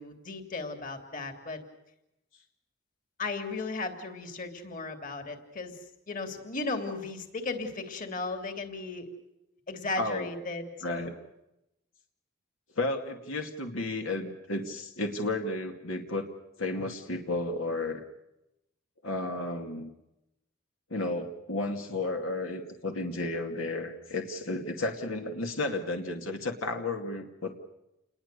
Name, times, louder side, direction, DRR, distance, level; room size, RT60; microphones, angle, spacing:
voice 1, 0.0-1.6 3.2-5.8 6.1-9.1 9.7-11.1, left 3 dB, 40° left, 6 dB, 3.1 m, -36 dB
voice 2, 10.0-10.3 10.8-11.1 12.8-16.3 16.6-18.0 19.0-19.9 20.9-27.5, left 2 dB, 80° left, 4 dB, 2.6 m, -33 dB
29.0 x 21.0 x 6.9 m, 0.88 s
head